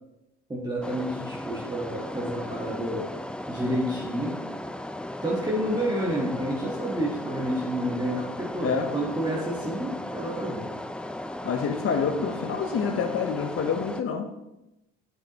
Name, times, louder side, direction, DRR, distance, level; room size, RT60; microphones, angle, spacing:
voice 1, 0.5-3.1 3.5-4.4 5.2-10.7, equal, 15° right, -4 dB, 1.4 m, -29 dB
sound 1, 0.8-14.0, left 1 dB, 5° left, 0.4 m, -36 dB
voice 2, 11.4-14.3, left 6 dB, 45° left, 5 dB, 0.9 m, -27 dB
7.9 x 6.5 x 3.0 m, 0.91 s
hypercardioid pair, 65°, 32 cm